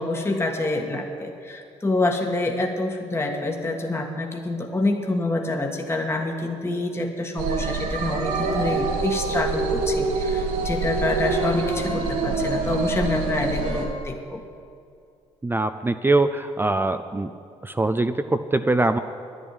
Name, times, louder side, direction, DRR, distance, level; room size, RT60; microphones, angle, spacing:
voice 1, 0.0-14.4, left 2 dB, 20° left, 2 dB, 1.5 m, -27 dB
sound 1, 7.4-13.9, right 3 dB, 80° right, 2.0 m, -25 dB
voice 2, 15.4-17.3 17.6-19.0, right 2 dB, 15° right, 9 dB, 0.5 m, -22 dB
10.5 x 10.0 x 8.9 m, 2.4 s
supercardioid pair, 65°, 14 cm